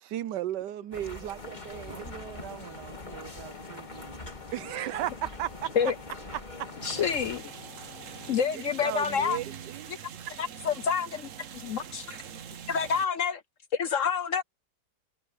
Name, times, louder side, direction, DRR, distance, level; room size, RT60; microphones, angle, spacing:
voice 1, 0.1-2.1 4.5-5.7 8.5-9.9, right 12 dB, 85° right, 1.3 m, -35 dB
sound 1, 0.9-7.4, left 1 dB, 25° left, 3.8 m, -43 dB
sound 2, 1.4-8.4, left 9 dB, 75° left, 1.5 m, -49 dB
voice 2, 1.9-4.1 12.2-12.3, right 8 dB, 70° right, 1.9 m, -46 dB
voice 3, 6.8-7.4 8.3-9.4 10.4-12.2 12.7-13.4 13.7-14.4, left 7 dB, 55° left, 1.0 m, -28 dB
sound 3, 6.8-13.1, right 8 dB, 55° right, 1.1 m, -44 dB
omnidirectional pair, 1.9 m